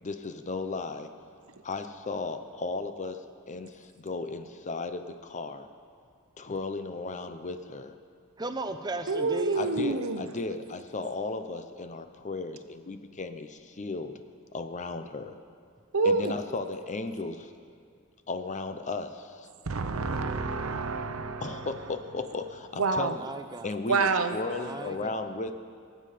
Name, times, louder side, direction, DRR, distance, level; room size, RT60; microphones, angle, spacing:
voice 1, 0.0-1.1 1.6-5.7 6.4-8.0 9.5-14.1 14.5-15.4 16.0-17.5 18.3-19.5 21.4-23.3 23.6-25.5, left 3 dB, 35° left, 9 dB, 0.6 m, -35 dB
voice 2, 8.4-9.6 23.1-23.8 24.5-25.3, right 2 dB, 20° right, 8 dB, 0.7 m, -36 dB
voice 3, 9.1-10.2 15.9-16.4 19.7-21.6 22.8-23.1 23.9-24.4, right 3 dB, 80° right, 8 dB, 0.8 m, -27 dB
23.0 x 7.7 x 5.0 m, 2.2 s
head